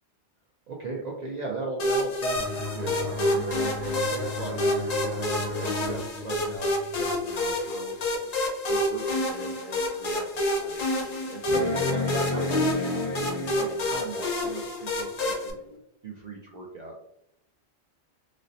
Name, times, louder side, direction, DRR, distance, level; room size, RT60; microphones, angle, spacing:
voice 1, 0.7-7.9 8.7-15.6 16.0-16.9, right 3 dB, 55° right, -1 dB, 0.5 m, -38 dB
sound 1, 1.8-15.5, left 1 dB, 45° left, 0.6 m, -28 dB
sound 2, 2.4-7.7, left 2 dB, 75° right, 0.9 m, -36 dB
sound 3, 9.4-9.5 10.0-10.1 11.5-14.0 15.7-15.8, left 3 dB, 65° left, 1.3 m, -30 dB
4.1 x 2.0 x 2.6 m, 0.78 s
omnidirectional pair, 1.1 m